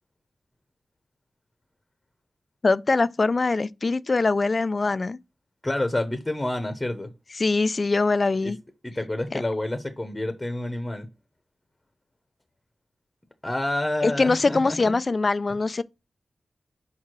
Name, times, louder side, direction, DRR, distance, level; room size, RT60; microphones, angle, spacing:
voice 1, 2.6-5.2 7.4-8.6 9.3-9.4 14.0-15.8, left 3 dB, 40° left, 0.3 m, -23 dB
voice 2, 5.6-7.1 8.4-8.5 8.8-11.1 13.4-15.0, left 1 dB, 15° left, 0.9 m, -28 dB
5.5 x 4.7 x 6.0 m
wide cardioid pair, 120°, 0 cm